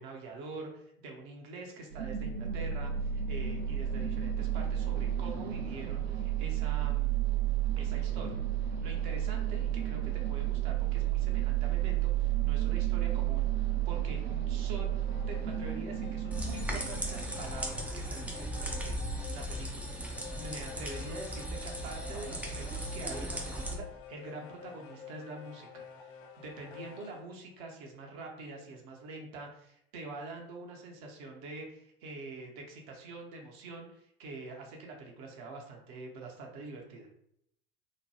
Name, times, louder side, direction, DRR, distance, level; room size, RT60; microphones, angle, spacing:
voice 1, 0.0-7.3 7.8-14.9 15.3-37.1, right 3 dB, 50° right, 1 dB, 0.8 m, -45 dB
sound 1, 1.9-17.8, right 11 dB, 75° right, 0.5 m, -32 dB
sound 2, 14.6-27.3, left 7 dB, 40° left, 0.6 m, -50 dB
sound 3, 16.3-23.7, right 1 dB, 5° right, 0.5 m, -37 dB
2.9 x 2.2 x 2.8 m, 0.71 s
figure-of-eight pair, 75°, 31 cm